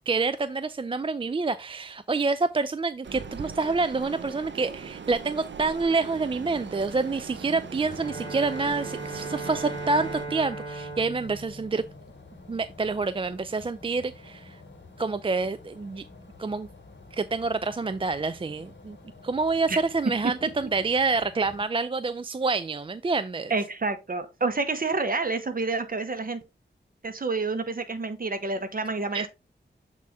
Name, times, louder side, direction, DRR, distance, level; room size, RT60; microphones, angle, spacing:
voice 1, 0.1-11.8 12.5-14.6 15.0-16.0 16.4-16.7 17.1-19.0 19.2-23.5 29.1-29.3, right 3 dB, 30° right, 0.4 m, -27 dB
sound 1, 3.0-10.3, right 5 dB, 80° right, 0.7 m, -40 dB
sound 2, 6.0-21.6, left 3 dB, 70° left, 2.3 m, -49 dB
Bowed string instrument, 7.8-12.4, right 2 dB, 20° left, 3.3 m, -38 dB
voice 2, 23.5-26.4 27.0-29.3, right 3 dB, 50° right, 1.2 m, -28 dB
7.4 x 4.2 x 3.5 m
wide cardioid pair, 70°, 19 cm